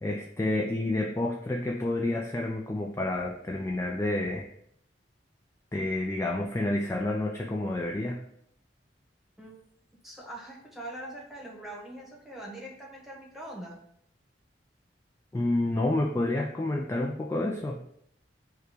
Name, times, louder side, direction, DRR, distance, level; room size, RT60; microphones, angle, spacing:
voice 1, 0.0-4.5 5.7-8.2 15.3-17.8, left 2 dB, 15° left, 0 dB, 0.3 m, -29 dB
voice 2, 10.0-13.8, right 1 dB, ahead, -3 dB, 1.2 m, -42 dB
4.7 x 2.3 x 4.8 m, 0.71 s
head